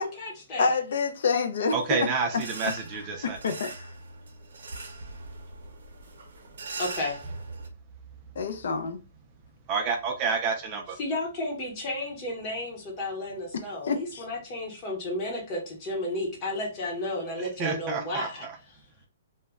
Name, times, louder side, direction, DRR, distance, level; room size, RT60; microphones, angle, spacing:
voice 1, 0.0-0.7 6.8-7.2 11.0-18.5, left 1 dB, 25° left, 0.9 m, -33 dB
voice 2, 0.6-2.4 3.2-3.9 8.4-9.0 13.8-14.2, left 4 dB, 65° left, 0.3 m, -27 dB
voice 3, 1.7-3.4 9.7-11.0 17.4-18.3, right 5 dB, 25° right, 0.4 m, -29 dB
sound 1, 2.3-7.7, right 3 dB, 75° right, 0.7 m, -41 dB
2.1 x 2.0 x 3.5 m
hypercardioid pair, 165°, 0 cm